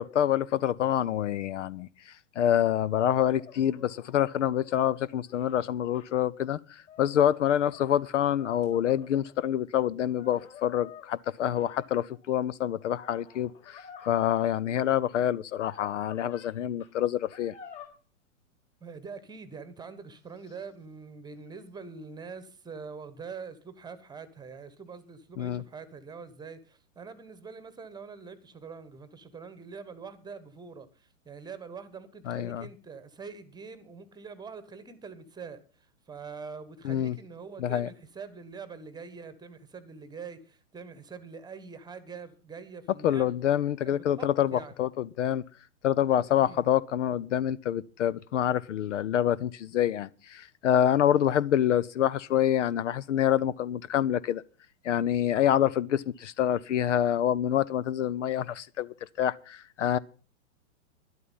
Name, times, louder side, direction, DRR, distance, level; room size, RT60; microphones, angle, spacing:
voice 1, 0.0-17.5 25.4-25.6 32.3-32.7 36.8-37.2 37.6-37.9 43.0-45.4 45.8-54.4 54.8-60.0, left 10 dB, 60° left, 0.6 m, -27 dB
sound 1, 3.4-6.1 6.8-9.5 10.1-12.2 12.8-14.5 15.5-16.5 16.8-16.9 17.3-17.9, left 7 dB, 30° left, 4.9 m, -50 dB
voice 2, 18.8-43.3 43.8-44.7 46.2-46.6, right 5 dB, 10° right, 1.3 m, -44 dB
12.0 x 11.5 x 5.5 m
hypercardioid pair, 115°, 42 cm